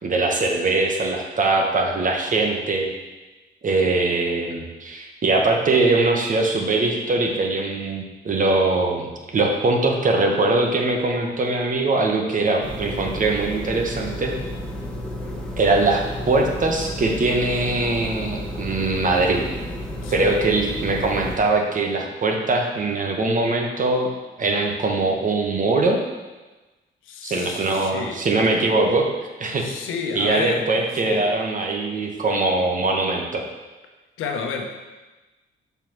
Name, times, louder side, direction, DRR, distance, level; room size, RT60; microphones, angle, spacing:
voice 1, 0.0-2.9 3.6-14.3 15.6-19.4 20.1-24.1 24.4-26.0 27.2-29.1 29.4-29.6 30.1-33.4, right 3 dB, 40° right, 2 dB, 1.3 m, -22 dB
sound 1, 12.6-21.4, left 1 dB, 5° left, 1.3 m, -32 dB
voice 2, 20.0-20.4 27.0-28.2 29.6-31.3 32.1-32.2 34.2-34.8, left 6 dB, 85° left, 3 dB, 1.0 m, -31 dB
5.8 x 4.6 x 6.0 m, 1.2 s
cardioid pair, 90°, 20 cm